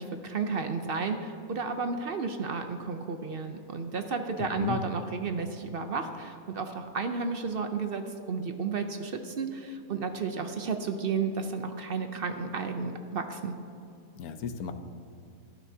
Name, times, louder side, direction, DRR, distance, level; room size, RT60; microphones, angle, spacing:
voice 1, 0.0-13.5, right 5 dB, 55° right, 7 dB, 0.6 m, -32 dB
voice 2, 4.4-4.8 14.2-14.7, left 8 dB, 75° left, 9 dB, 1.2 m, -34 dB
18.0 x 11.0 x 2.8 m, 2.6 s
omnidirectional pair, 1.6 m